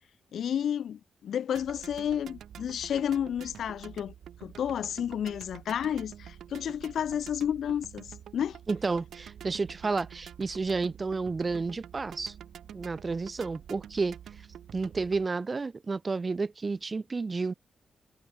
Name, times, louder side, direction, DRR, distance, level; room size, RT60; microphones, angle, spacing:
voice 1, 0.3-4.1 4.4-8.6, left 9 dB, 75° left, 0.5 m, -31 dB
sound 1, 1.5-15.3, right 9 dB, 85° right, 4.4 m, -47 dB
voice 2, 8.7-12.3 12.7-14.2 14.7-17.5, right 4 dB, 25° right, 1.1 m, -31 dB
wide cardioid pair, 160°, 0 cm